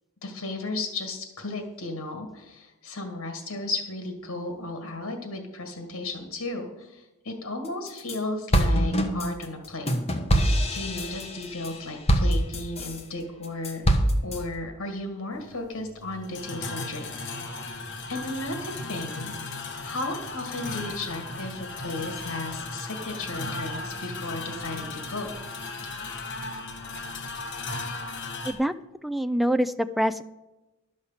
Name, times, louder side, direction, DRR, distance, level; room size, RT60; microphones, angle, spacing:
voice 1, 0.2-9.9 10.7-13.8 14.2-17.8 18.1-19.3 19.8-25.3, left 2 dB, 90° left, 5 dB, 1.9 m, -34 dB
sound 1, 7.7-8.2 8.5-13.0 13.4-14.4, equal, 30° left, 1.2 m, -24 dB
sound 2, 15.3-28.5, left 3 dB, 55° left, 1.5 m, -36 dB
voice 2, 29.0-30.2, equal, ahead, 11 dB, 0.4 m, -25 dB
11.5 x 6.5 x 7.2 m, 1.0 s
head